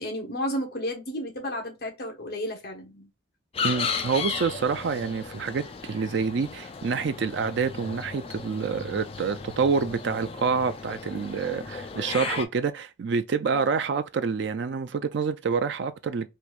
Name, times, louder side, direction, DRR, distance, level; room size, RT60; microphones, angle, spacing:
voice 1, 0.0-3.1 13.4-13.7, equal, 55° left, 1.2 m, -32 dB
sound 1, 3.5-12.4, left 5 dB, 30° left, 0.3 m, -35 dB
voice 2, 3.6-16.3, right 5 dB, 70° right, 0.4 m, -27 dB
4.4 x 2.6 x 2.4 m
head